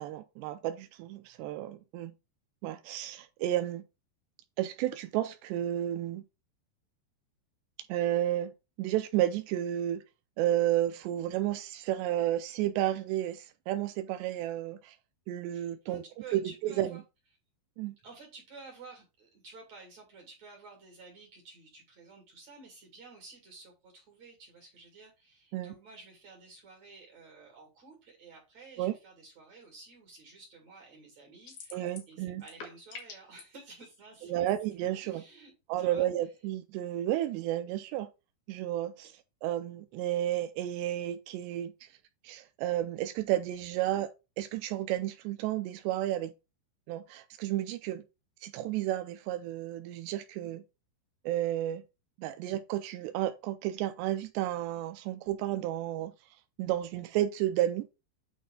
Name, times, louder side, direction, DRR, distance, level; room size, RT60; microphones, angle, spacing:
voice 1, 0.0-2.1 2.6-3.8 4.6-6.2 7.9-8.5 8.8-10.0 10.4-15.0 15.3-16.0 16.3-16.9 17.8-18.0 25.5-25.7 28.8-28.9 31.7-32.4 34.3-35.2 35.7-38.1 38.5-39.1 39.4-41.9 42.2-44.1 44.4-46.3 46.9-48.0 48.4-50.6 51.3-51.8 52.2-56.1 56.6-57.9, right 13 dB, 85° right, 2.5 m, -32 dB
voice 2, 15.5-17.0 18.0-34.5 35.0-35.5 35.8-36.3, right 3 dB, 45° right, 2.8 m, -52 dB
sound 1, 31.5-32.1 32.4-33.4, left 5 dB, 55° left, 2.5 m, -45 dB
9.2 x 4.1 x 3.7 m
omnidirectional pair, 5.4 m